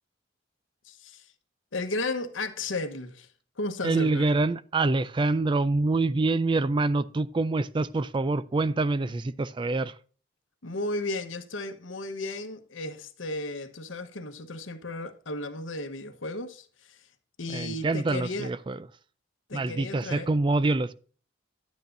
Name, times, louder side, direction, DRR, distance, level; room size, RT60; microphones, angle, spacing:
voice 1, 0.8-1.3 1.7-3.3 3.6-4.2 10.6-17.1 17.4-18.5 19.5-20.3, left 2 dB, 85° left, 1.1 m, -34 dB
voice 2, 3.8-9.9 17.5-18.8 19.5-20.9, right 3 dB, 25° right, 0.3 m, -26 dB
11.5 x 9.2 x 2.6 m
head